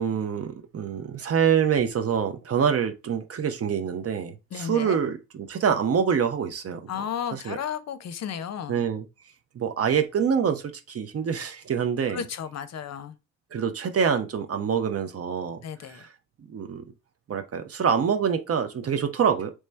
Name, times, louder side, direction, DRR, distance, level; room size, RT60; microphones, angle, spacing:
voice 1, 0.0-5.2 5.5-6.8 7.3-7.6 8.7-9.0 9.5-12.2 13.5-15.6 15.9-16.0 16.5-16.8 17.3-19.5, right 7 dB, 45° right, 0.7 m, -25 dB
voice 2, 4.5-5.0 6.9-8.9 12.1-13.2 15.6-16.1, left 8 dB, 55° left, 0.6 m, -33 dB
3.2 x 3.2 x 3.2 m
hypercardioid pair, 50°, 33 cm